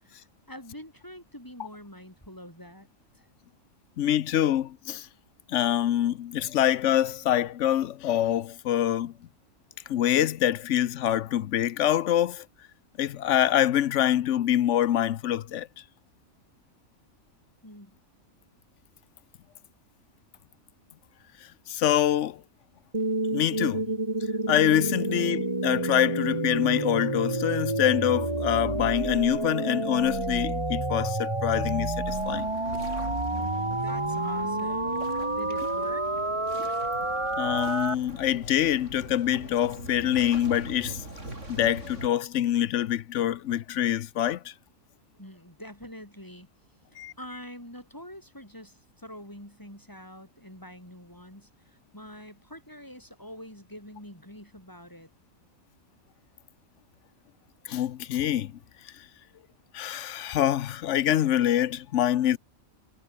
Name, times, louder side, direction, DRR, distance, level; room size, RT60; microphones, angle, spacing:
voice 1, 0.0-2.9 3.1-3.2 17.6-18.0 33.3-36.1 45.2-46.5 47.2-55.1, equal, 15° left, 6.4 m, -45 dB
voice 2, 4.0-5.1 5.5-9.1 9.9-12.4 13.0-15.7 21.7-22.4 23.3-23.9 24.5-32.5 37.4-41.0 41.5-44.5 47.0-47.1 57.7-58.5 59.7-62.4, left 11 dB, 65° left, 0.9 m, -25 dB
sound 1, 22.9-38.0, right 2 dB, 20° right, 2.4 m, -29 dB
sound 2, 32.1-42.1, right 1 dB, 55° right, 7.1 m, -42 dB
omnidirectional pair, 1.5 m